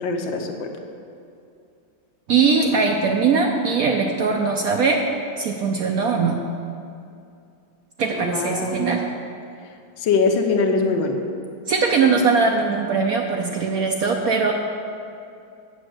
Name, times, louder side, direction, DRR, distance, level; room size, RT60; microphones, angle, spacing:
voice 1, 0.0-0.7 8.1-9.0 10.0-11.2, left 4 dB, 75° left, 4 dB, 1.6 m, -22 dB
voice 2, 2.3-5.0 5.4-6.4 8.0-9.0 11.7-14.5, right 5 dB, 65° right, 2 dB, 0.9 m, -20 dB
8.0 x 6.3 x 7.8 m, 2.5 s
omnidirectional pair, 2.1 m